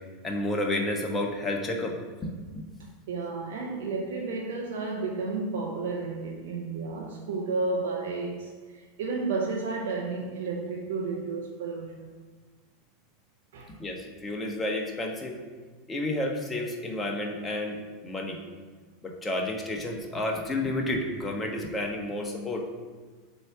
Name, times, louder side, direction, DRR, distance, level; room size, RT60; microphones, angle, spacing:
voice 1, 0.2-1.9 2.2-2.7 13.7-15.3 15.9-17.8 18.0-18.4 19.0-22.6, left 1 dB, 15° left, 1.3 m, -31 dB
voice 2, 3.1-12.1 13.5-13.7, right 3 dB, 60° right, 0.8 m, -32 dB
7.7 x 3.1 x 6.0 m
figure-of-eight pair, 85°, 0 cm